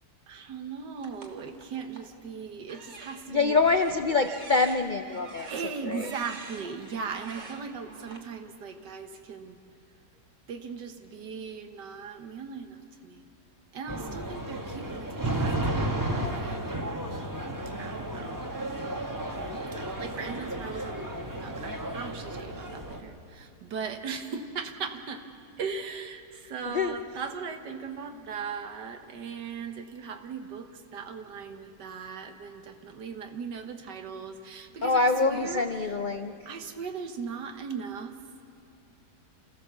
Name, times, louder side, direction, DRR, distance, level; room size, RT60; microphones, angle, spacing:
voice 1, 0.3-3.6 5.5-9.6 10.5-13.3 13.7-16.6 17.8-18.5 19.7-25.3 25.6-35.9 36.4-38.2, right 6 dB, 85° right, 7 dB, 1.8 m, -38 dB
sound 1, 1.0-2.1 2.6-8.2, right 3 dB, 45° right, 1.8 m, -47 dB
voice 2, 3.3-5.5 5.8-6.1 26.7-26.9 34.8-36.3, left 3 dB, 80° left, 8 dB, 0.4 m, -25 dB
sound 2, 13.9-23.0, right 1 dB, 15° right, 1.1 m, -33 dB
27.5 x 15.5 x 7.1 m, 2.4 s
omnidirectional pair, 1.8 m